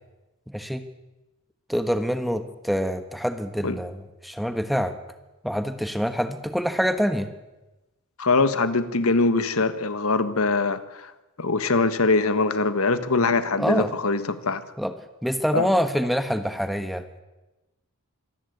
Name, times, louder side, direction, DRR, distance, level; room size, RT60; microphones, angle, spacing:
voice 1, 0.5-0.8 1.7-4.9 5.4-7.3 13.6-13.9 14.8-14.9 15.2-17.0, equal, ahead, 9 dB, 1.3 m, -25 dB
voice 2, 8.2-11.1 11.4-14.6 15.5-15.7, left 3 dB, 75° left, 12 dB, 1.5 m, -23 dB
25.5 x 14.0 x 9.5 m, 1.0 s
head